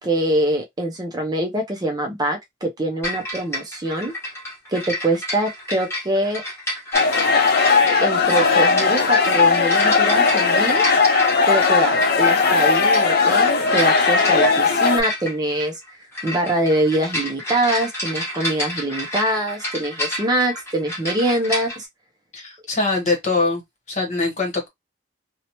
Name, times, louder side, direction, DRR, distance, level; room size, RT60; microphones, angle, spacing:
voice 1, 0.0-4.1 4.7-6.4 8.0-10.8 11.5-15.8 16.2-21.9, right 1 dB, 20° right, 0.4 m, -24 dB
sound 1, 3.0-21.8, left 1 dB, 15° left, 1.1 m, -30 dB
sound 2, 6.9-15.0, left 4 dB, 55° left, 0.5 m, -17 dB
voice 2, 22.3-23.6 23.9-24.7, left 3 dB, 40° left, 1.0 m, -23 dB
2.8 x 2.1 x 2.8 m
head